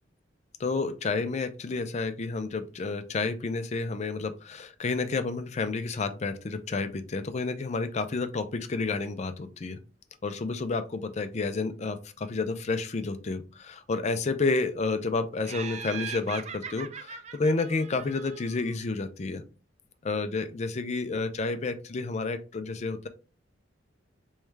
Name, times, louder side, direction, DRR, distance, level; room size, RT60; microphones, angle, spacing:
voice 1, 0.6-9.8 10.2-19.4 20.0-23.1, left 3 dB, 35° left, 9 dB, 0.4 m, -30 dB
Laughter, 15.4-18.8, right 7 dB, 35° right, 0.3 m, -40 dB
3.5 x 3.1 x 3.2 m, 0.35 s
head